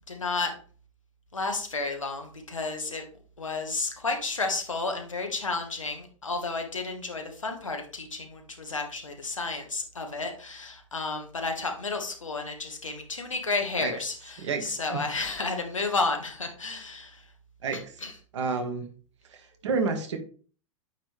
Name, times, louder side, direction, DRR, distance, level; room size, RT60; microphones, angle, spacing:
voice 1, 0.1-0.5 1.3-3.0 3.4-17.3 18.0-18.1, left 3 dB, 80° left, 4 dB, 1.4 m, -32 dB
voice 2, 14.4-15.0 17.6-17.8 18.3-18.9 19.3-20.2, right 4 dB, 65° right, 5 dB, 1.4 m, -30 dB
8.9 x 3.4 x 3.3 m, 0.41 s
figure-of-eight pair, 95°, 17 cm